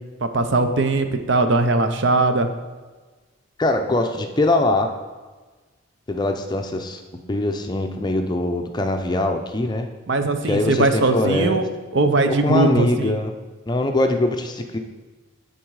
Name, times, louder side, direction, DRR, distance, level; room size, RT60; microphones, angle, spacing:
voice 1, 0.2-2.5 10.1-11.6 11.9-13.1, right 2 dB, 60° right, 7 dB, 0.6 m, -20 dB
voice 2, 3.6-4.9 6.1-7.0 7.3-9.9 10.4-11.6 12.3-13.3 13.7-14.8, left 2 dB, 20° left, 5 dB, 0.5 m, -22 dB
11.5 x 3.9 x 4.7 m, 1.3 s
head